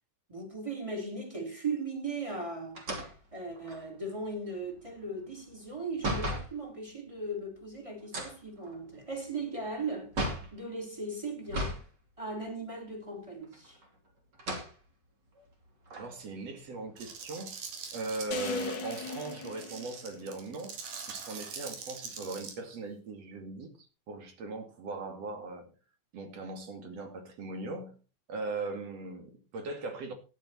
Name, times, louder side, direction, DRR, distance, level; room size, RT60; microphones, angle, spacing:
voice 1, 0.3-2.8 3.3-10.2 10.5-11.8 12.2-13.8, right 3 dB, 10° right, 3.4 m, -38 dB
sound 1, 2.7-6.5 8.0-10.6 11.4-11.9 12.2-12.3 13.4-13.9 14.3-14.7 15.4-15.5 15.9-17.3, right 1 dB, 35° right, 3.3 m, -37 dB
voice 2, 15.9-17.6 17.9-20.7 21.1-23.7 24.1-25.7 26.1-27.9 28.3-30.1, right 3 dB, 55° right, 3.2 m, -39 dB
sound 2, 17.0-22.5, right 6 dB, 80° right, 3.8 m, -44 dB
sound 3, 18.3-20.6, left 5 dB, 60° left, 1.2 m, -39 dB
14.0 x 9.9 x 4.4 m
omnidirectional pair, 3.6 m